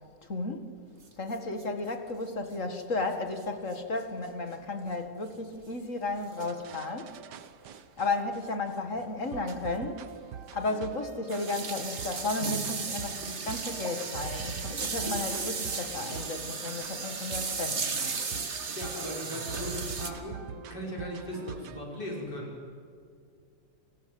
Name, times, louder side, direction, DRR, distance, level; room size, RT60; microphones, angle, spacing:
voice 1, 0.3-0.7 1.2-7.2 8.0-10.1 10.5-18.2, left 3 dB, 45° left, 6 dB, 2.1 m, -34 dB
sound 1, 1.0-1.1 1.3-1.4 1.6-1.7 3.4-3.5 3.7-3.8 4.8-4.9 6.4-6.6 7.7-7.8 8.5-8.6 8.9-9.1 9.5-9.7 9.9-10.0 10.6-20.1, right 4 dB, 40° right, 1.8 m, -35 dB
sound 2, 6.4-8.7 9.3-21.8, right 8 dB, 70° right, 1.5 m, -44 dB
voice 2, 18.5-22.5, equal, 65° left, -2 dB, 6.3 m, -38 dB
29.5 x 18.5 x 7.8 m, 2.3 s
omnidirectional pair, 1.9 m